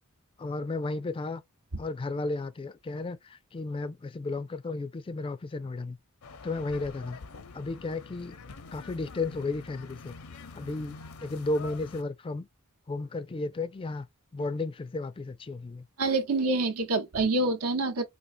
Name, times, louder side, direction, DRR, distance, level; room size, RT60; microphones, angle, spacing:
voice 1, 0.4-1.4 1.8-6.0 6.4-7.2 7.5-8.4 8.7-10.1 10.5-12.5 12.9-14.1 14.3-15.8, left 3 dB, 25° left, 0.3 m, -33 dB
sound 1, 6.2-12.0, left 4 dB, 75° left, 0.6 m, -46 dB
voice 2, 16.0-18.0, right 2 dB, 85° right, 0.8 m, -26 dB
4.4 x 2.7 x 2.5 m
head